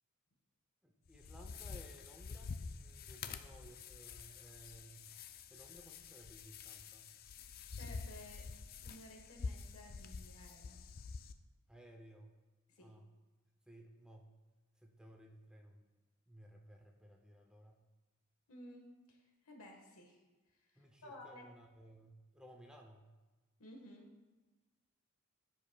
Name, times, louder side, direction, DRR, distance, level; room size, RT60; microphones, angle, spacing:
voice 1, 0.8-5.2 5.5-7.2 11.7-12.3 12.8-13.0 13.7-14.3 14.8-15.9 16.3-17.8 20.8-23.1, right 1 dB, 5° right, 1 dB, 0.6 m, -59 dB
sound 1, 1.1-11.3, left 5 dB, 45° left, 0.4 m, -48 dB
voice 2, 7.4-8.5 8.8-10.8 12.7-12.9 18.5-20.2 20.6-21.4 23.6-24.1, left 1 dB, 70° left, 2 dB, 1.4 m, -55 dB
14.5 x 5.2 x 2.3 m, 1.2 s
head